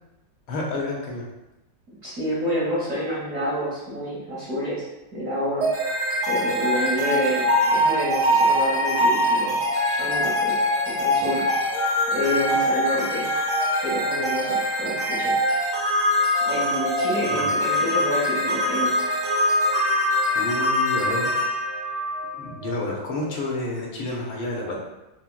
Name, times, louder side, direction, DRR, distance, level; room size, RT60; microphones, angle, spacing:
voice 1, 0.5-1.2 11.1-11.2 17.3-17.5 20.3-21.4 22.4-24.8, left 2 dB, 75° left, -3 dB, 1.5 m, -29 dB
voice 2, 2.0-4.8 5.1-5.7 6.3-9.5 9.9-10.5 10.9-11.4 12.1-13.3 13.8-15.3 16.4-18.9, equal, 50° right, -8 dB, 1.1 m, -28 dB
sound 1, 5.6-22.8, equal, 75° right, 2.1 m, -23 dB
5.6 x 2.2 x 2.2 m, 0.95 s
omnidirectional pair, 2.3 m